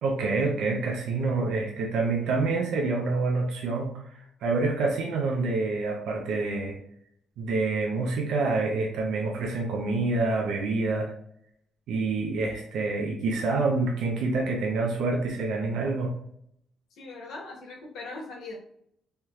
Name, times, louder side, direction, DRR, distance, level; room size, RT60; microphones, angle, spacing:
voice 1, 0.0-6.8 7.4-11.1 11.9-16.1, right 3 dB, 80° right, 0 dB, 0.6 m, -27 dB
voice 2, 16.9-18.5, left 3 dB, 80° left, -2 dB, 1.1 m, -40 dB
3.5 x 2.7 x 2.3 m, 0.69 s
cardioid pair, 90°, 0 cm